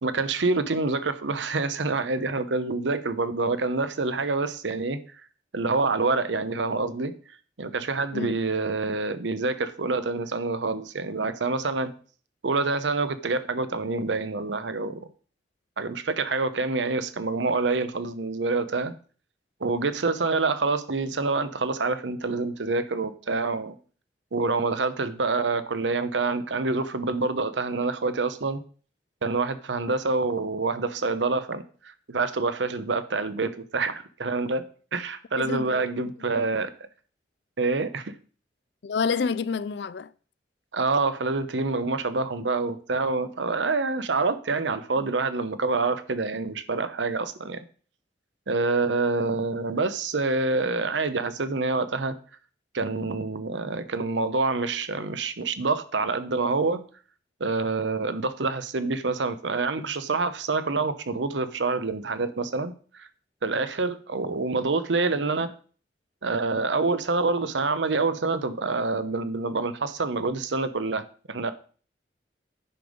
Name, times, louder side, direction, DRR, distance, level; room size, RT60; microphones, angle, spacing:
voice 1, 0.0-5.0 5.5-11.9 12.4-15.1 15.8-18.9 19.6-23.7 24.3-28.6 29.2-34.6 34.9-36.7 37.6-38.1 40.7-47.6 48.5-52.2 52.7-56.8 57.4-63.1 63.4-65.5 66.2-71.5, right 3 dB, 90° right, 0.9 m, -27 dB
voice 2, 35.4-35.9 38.8-40.1 45.0-45.1, left 5 dB, 70° left, 0.4 m, -28 dB
10.0 x 5.3 x 5.1 m
head